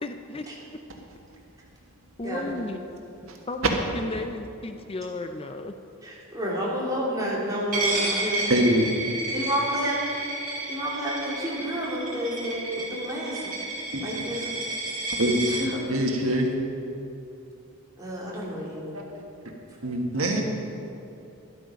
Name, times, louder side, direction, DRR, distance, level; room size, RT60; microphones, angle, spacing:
voice 1, 0.0-0.5 2.2-2.8 3.5-5.8, left 2 dB, 25° left, 7 dB, 0.5 m, -34 dB
voice 2, 2.2-2.7 6.0-8.4 9.3-13.6 14.0-14.5 15.5-15.8 18.0-18.8, equal, 20° right, -6 dB, 3.2 m, -30 dB
Coin (dropping), 7.7-15.6, right 2 dB, 40° right, 3.2 m, -31 dB
voice 3, 8.5-8.9 13.9-14.2 15.2-15.4 15.9-16.5 18.9-19.2 19.8-20.4, right 1 dB, 80° right, 1 dB, 1.7 m, -24 dB
13.0 x 12.0 x 5.2 m, 2.8 s
head